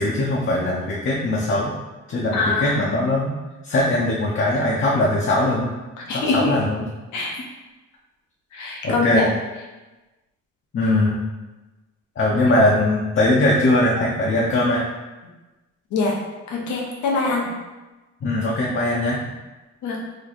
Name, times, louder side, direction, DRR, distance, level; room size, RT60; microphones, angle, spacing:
voice 1, 0.0-1.7 2.1-3.3 3.6-5.7 6.1-6.9 8.8-9.3 10.7-11.2 12.2-14.8 18.2-19.2, left 1 dB, 40° left, -4 dB, 0.7 m, -20 dB
voice 2, 2.3-2.7 6.1-6.5 7.1-7.3 8.5-9.2 15.9-16.1 16.5-17.5 19.8-20.0, left 3 dB, 80° left, -2 dB, 0.9 m, -23 dB
3.1 x 2.2 x 4.0 m, 1.1 s
cardioid pair, 90°, 30 cm